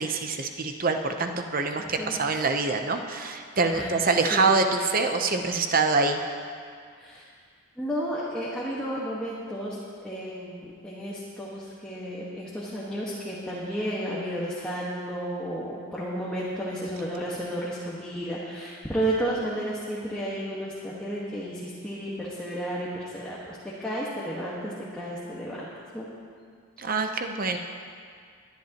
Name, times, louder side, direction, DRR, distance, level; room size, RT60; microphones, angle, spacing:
voice 1, 0.0-6.2 26.8-27.6, right 4 dB, 40° right, 5 dB, 0.7 m, -25 dB
voice 2, 1.8-2.1 3.7-4.0 4.3-4.5 7.0-7.2 7.8-9.8 10.0-25.7 25.9-26.1, equal, 5° left, -8 dB, 1.4 m, -32 dB
22.0 x 10.5 x 3.0 m, 2.1 s
head